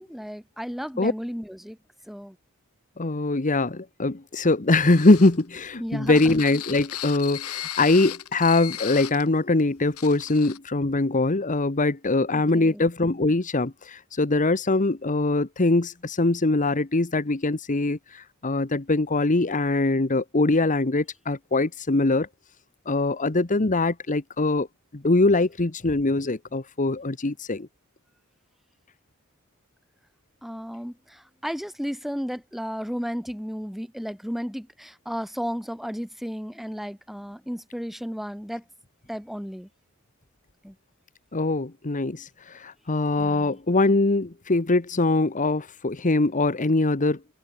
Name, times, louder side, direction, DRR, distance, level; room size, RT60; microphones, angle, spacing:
voice 1, 0.0-1.8 2.1-2.4 5.8-6.2 12.3-12.9 30.4-38.6 39.1-39.7 40.6-40.7 43.2-43.6, equal, ahead, 3.1 m, -34 dB
voice 2, 3.0-22.3 22.9-24.7 24.9-27.7 41.3-47.2, left 2 dB, 35° left, 1.2 m, -22 dB
sound 1, 4.7-9.3 9.6-9.7 10.0-10.6, left 12 dB, 80° left, 1.9 m, -36 dB
open air
head